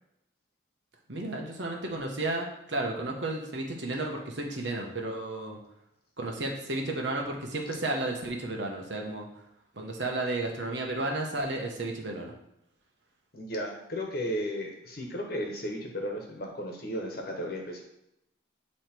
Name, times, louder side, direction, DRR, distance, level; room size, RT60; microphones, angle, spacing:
voice 1, 1.1-5.6 6.2-9.3 9.8-12.3, right 2 dB, 65° right, 1 dB, 1.1 m, -33 dB
voice 2, 13.3-17.8, equal, 50° left, 1 dB, 1.2 m, -34 dB
8.7 x 3.2 x 4.5 m, 0.83 s
head